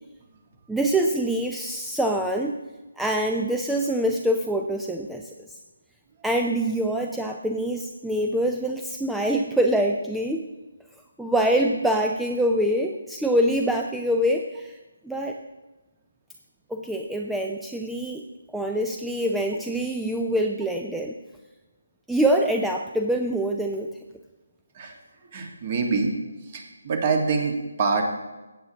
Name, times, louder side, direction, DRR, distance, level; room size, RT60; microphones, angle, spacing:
voice 1, 0.7-2.6 3.0-5.6 6.2-10.4 11.2-14.7 15.0-15.4 16.7-18.2 18.5-21.1 22.1-23.9, right 1 dB, ahead, 2 dB, 0.4 m, -25 dB
voice 2, 25.3-26.2 26.4-28.0, right 4 dB, 35° right, 3 dB, 1.7 m, -25 dB
15.5 x 8.9 x 3.0 m, 1.1 s
figure-of-eight pair, 150°, 0 cm